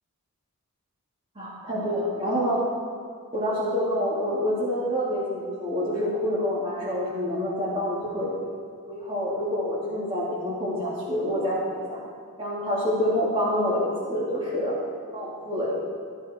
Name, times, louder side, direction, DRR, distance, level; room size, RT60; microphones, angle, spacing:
voice 1, 1.3-2.6 3.3-8.3 8.9-12.0 12.4-14.8 15.1-15.8, equal, 25° right, -7 dB, 2.9 m, -27 dB
16.5 x 13.0 x 4.6 m, 2.3 s
head